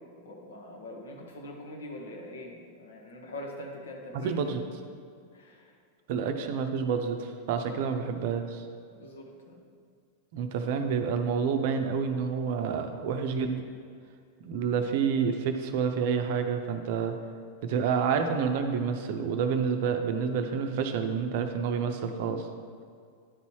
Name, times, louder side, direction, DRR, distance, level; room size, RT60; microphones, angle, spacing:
voice 1, 0.2-4.4 5.3-5.7 7.7-7.8 8.9-9.6, left 1 dB, 65° left, 0 dB, 1.3 m, -43 dB
voice 2, 4.1-4.6 6.1-8.7 10.3-13.6 14.4-17.2 17.6-22.5, right 6 dB, 50° right, 6 dB, 0.6 m, -28 dB
10.0 x 4.1 x 4.6 m, 2.2 s
figure-of-eight pair, 90°, 0 cm